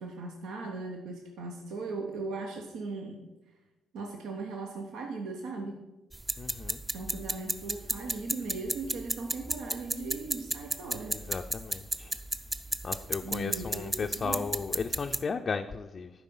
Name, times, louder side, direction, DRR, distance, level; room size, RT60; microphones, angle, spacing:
voice 1, 0.0-3.2 3.9-5.8 6.9-11.2 13.2-14.5, right 3 dB, 85° right, 2 dB, 0.9 m, -38 dB
sound 1, 6.1-15.2, right 1 dB, 15° right, 0.5 m, -34 dB
voice 2, 6.4-6.8 11.1-12.2 12.8-16.1, left 5 dB, 40° left, 4 dB, 0.4 m, -35 dB
11.5 x 4.8 x 5.4 m, 1.1 s
cardioid pair, 90°, 0 cm